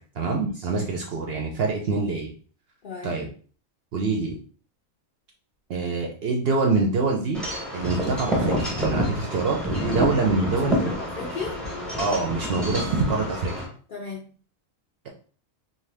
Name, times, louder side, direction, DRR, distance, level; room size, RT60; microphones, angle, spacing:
voice 1, 0.2-2.3 3.0-3.3 3.9-4.3 5.7-7.4 7.7-10.9 12.0-13.5, right 3 dB, 60° right, 1 dB, 0.7 m, -25 dB
voice 2, 2.8-3.2 9.8-11.6 13.9-14.3, left 5 dB, 60° left, -2 dB, 0.5 m, -36 dB
Wind chime / Wind, 7.3-13.6, equal, ahead, 0.6 m, -28 dB
2.7 x 2.2 x 3.2 m, 0.41 s
omnidirectional pair, 1.4 m